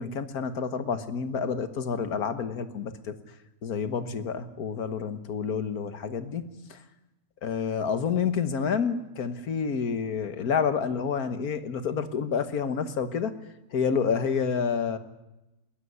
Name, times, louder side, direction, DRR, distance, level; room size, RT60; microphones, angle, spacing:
voice 1, 0.0-3.2 3.6-6.4 6.7-6.8 7.4-13.3 13.7-15.0, left 6 dB, 80° left, 10 dB, 1.8 m, -29 dB
21.0 x 15.0 x 9.7 m, 0.97 s
omnidirectional pair, 1.6 m